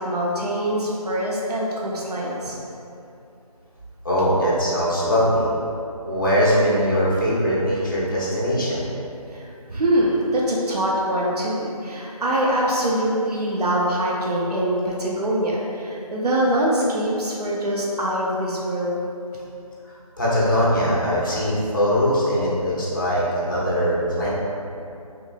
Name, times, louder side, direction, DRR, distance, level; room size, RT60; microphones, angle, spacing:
voice 1, 0.0-2.6 9.3-19.0, right 1 dB, 90° right, -4 dB, 0.5 m, -23 dB
voice 2, 4.0-5.5 6.0-8.9 20.2-24.3, equal, 35° left, -7 dB, 0.5 m, -21 dB
3.0 x 2.1 x 2.4 m, 2.7 s
figure-of-eight pair, 165°, 20 cm